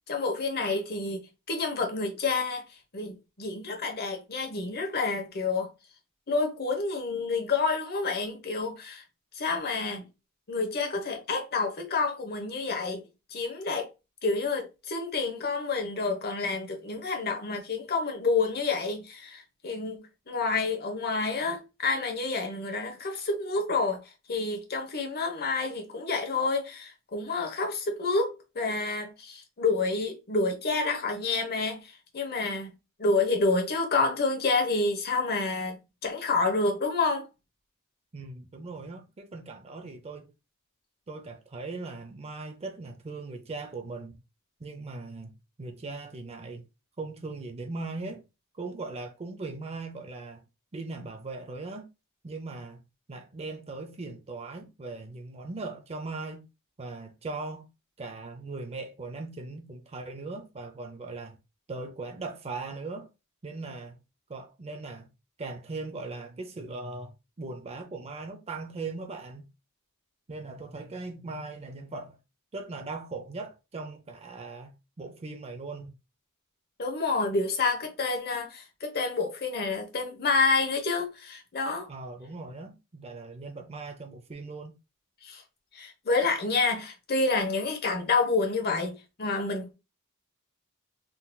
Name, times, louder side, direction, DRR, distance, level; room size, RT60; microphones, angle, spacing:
voice 1, 0.1-2.6 2.9-5.7 6.3-9.0 9.3-10.0 10.5-13.0 13.3-13.9 14.2-24.0 24.3-32.7 33.0-35.8 36.0-37.2 76.8-81.9 85.2-85.4 85.7-89.7, left 3 dB, 45° left, 0.9 m, -28 dB
voice 2, 38.1-40.3 41.1-44.2 44.6-46.7 47.0-48.2 48.5-50.4 50.7-51.9 52.2-56.5 56.8-57.7 58.0-61.4 61.7-63.1 63.4-64.0 64.3-65.1 65.4-69.5 70.3-72.2 72.5-75.9 81.9-84.8, right 3 dB, 30° right, 0.5 m, -39 dB
3.8 x 2.8 x 2.2 m
head